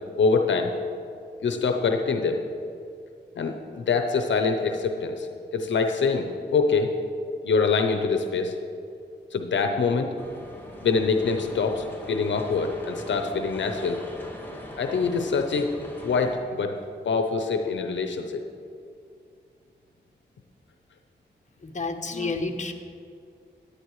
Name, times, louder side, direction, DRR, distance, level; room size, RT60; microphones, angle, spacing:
voice 1, 0.2-0.7 1.4-2.4 3.4-7.0 7.4-8.5 9.3-10.1 10.8-14.0 14.8-15.7 16.0-16.8 17.0-18.4, left 4 dB, 85° left, 5 dB, 0.7 m, -25 dB
sound 1, 10.2-16.4, left 1 dB, 10° left, 2.0 m, -41 dB
voice 2, 21.6-22.7, left 3 dB, 40° left, 5 dB, 1.0 m, -30 dB
13.0 x 10.5 x 3.1 m, 2.4 s
cardioid pair, 50°, 19 cm